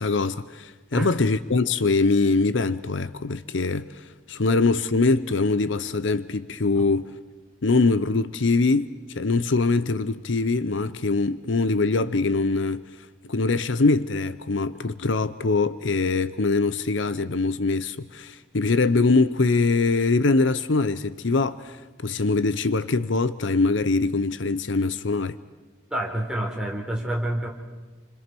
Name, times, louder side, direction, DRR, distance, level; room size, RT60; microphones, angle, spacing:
voice 1, 0.0-7.1 7.6-12.8 13.3-25.4, left 3 dB, 70° left, 0.8 m, -23 dB
voice 2, 25.9-27.5, right 1 dB, 5° right, 4.1 m, -28 dB
29.0 x 26.0 x 6.2 m
head